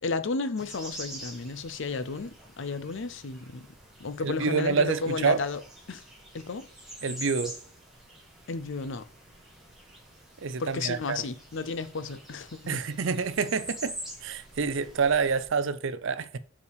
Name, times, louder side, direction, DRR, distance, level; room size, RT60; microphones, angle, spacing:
voice 1, 0.0-3.7 4.0-5.6 5.9-6.0 6.3-6.7 8.5-9.1 10.6-12.8, left 4 dB, 60° left, 0.6 m, -33 dB
sound 1, 0.6-15.5, right 1 dB, ahead, 2.0 m, -46 dB
voice 2, 4.2-5.4 7.0-7.6 10.4-11.2 12.7-14.0 14.2-16.4, right 5 dB, 60° right, 0.5 m, -27 dB
6.5 x 5.4 x 4.9 m
head